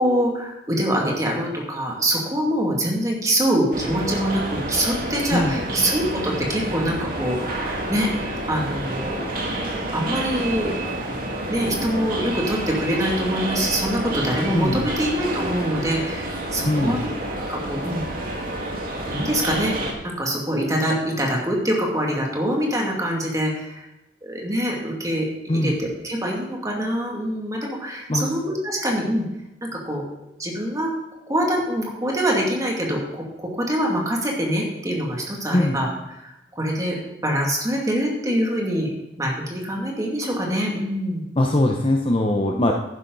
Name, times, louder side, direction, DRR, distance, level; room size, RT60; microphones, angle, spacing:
voice 1, 0.0-9.3 9.9-11.0 11.5-17.1 17.5-18.0 19.1-19.8 20.0-23.8 24.2-29.3 29.6-30.0 30.4-30.9 31.3-35.9 36.2-38.9 39.2-41.2, equal, 20° right, -1 dB, 2.4 m, -24 dB
sound 1, 3.7-19.9, right 1 dB, 55° right, 2.1 m, -29 dB
voice 2, 16.6-17.0 25.5-25.8 28.1-28.3 35.5-35.8 41.4-42.7, left 1 dB, 30° left, 2 dB, 0.8 m, -21 dB
11.5 x 10.0 x 4.0 m, 0.92 s
head